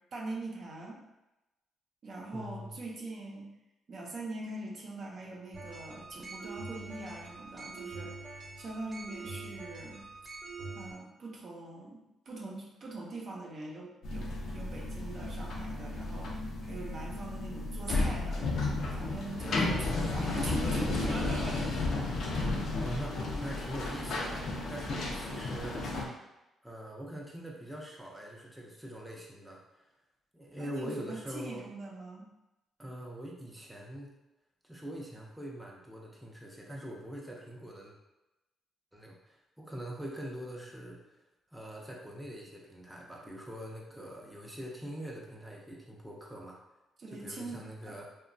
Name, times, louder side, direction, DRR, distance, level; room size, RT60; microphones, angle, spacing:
voice 1, 0.1-1.0 2.0-3.5 3.9-10.0 10.7-16.4 16.6-18.4 18.9-21.7 22.4-22.8 30.6-32.3 47.0-47.6 47.9-48.0, right 2 dB, 55° right, -2 dB, 0.6 m, -42 dB
voice 2, 2.3-2.8 19.4-20.0 22.8-25.8 26.6-29.9 30.3-31.6 32.8-34.1 34.6-37.9 38.9-41.0 41.5-46.6 47.1-48.1, equal, 5° right, -3 dB, 0.5 m, -43 dB
sound 1, 5.5-10.9, right 3 dB, 25° right, 0.9 m, -44 dB
sound 2, 14.0-26.0, left 2 dB, 65° left, 0.5 m, -33 dB
2.9 x 2.2 x 2.5 m, 0.98 s
cardioid pair, 90°, 0 cm